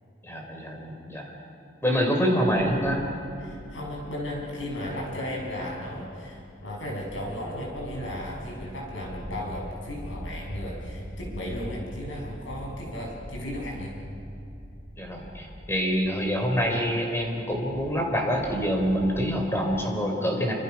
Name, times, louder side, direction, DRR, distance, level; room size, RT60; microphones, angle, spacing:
voice 1, 0.2-1.3 1.8-3.0 15.0-20.5, equal, 15° left, 1 dB, 3.8 m, -26 dB
sound 1, 2.4-19.8, equal, 10° right, 2.3 m, -43 dB
voice 2, 3.4-14.0, left 1 dB, 75° left, -2 dB, 6.8 m, -35 dB
27.0 x 25.5 x 6.0 m, 2.6 s
head